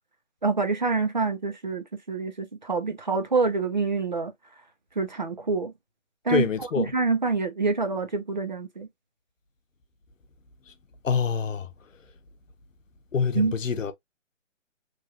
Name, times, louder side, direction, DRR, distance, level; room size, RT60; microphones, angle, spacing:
voice 1, 0.4-4.3 5.0-5.7 6.2-8.9 13.3-13.5, right 4 dB, 35° right, 0.5 m, -26 dB
voice 2, 6.3-6.9 11.0-11.7 13.1-13.9, left 6 dB, 80° left, 0.8 m, -25 dB
3.0 x 2.4 x 2.6 m
hypercardioid pair, 170°, 39 cm